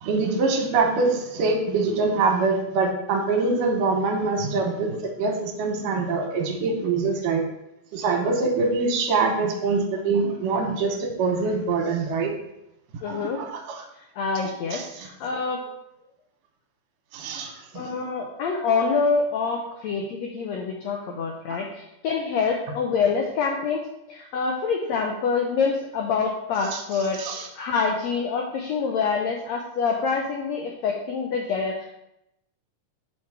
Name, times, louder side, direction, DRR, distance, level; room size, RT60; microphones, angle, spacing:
voice 1, 0.0-7.4 7.9-12.3 13.1-13.8 14.7-14.9 17.1-17.9 21.5-21.6 26.7-26.8 27.2-27.4, right 4 dB, 75° right, 3 dB, 2.5 m, -24 dB
voice 2, 13.0-13.4 14.1-15.7 17.7-23.8 24.1-31.9, left 5 dB, 80° left, 1 dB, 1.6 m, -26 dB
5.3 x 5.3 x 4.7 m, 0.86 s
omnidirectional pair, 3.9 m